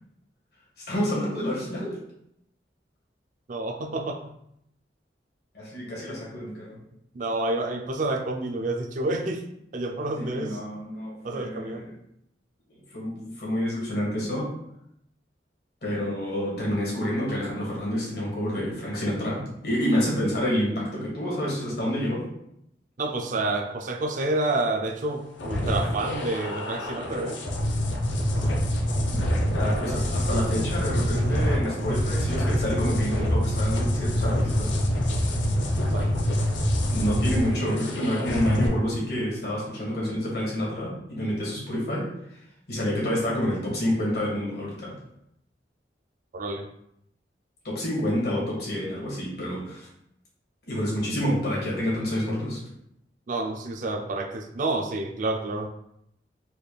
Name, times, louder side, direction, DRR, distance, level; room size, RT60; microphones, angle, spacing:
voice 1, 0.8-1.9 5.5-6.8 10.1-11.9 12.9-14.5 15.8-22.2 29.5-34.8 36.9-42.4 42.7-44.9 47.6-49.9 50.7-52.6, equal, 60° left, -5 dB, 1.5 m, -28 dB
voice 2, 3.5-4.2 7.1-9.4 9.7-10.6 11.2-11.9 23.0-27.4 35.8-36.1 46.3-46.7 53.3-55.7, right 2 dB, 45° right, 4 dB, 0.4 m, -29 dB
sound 1, 25.4-38.7, equal, 90° left, 0.6 m, -26 dB
4.2 x 3.3 x 2.3 m, 0.76 s
head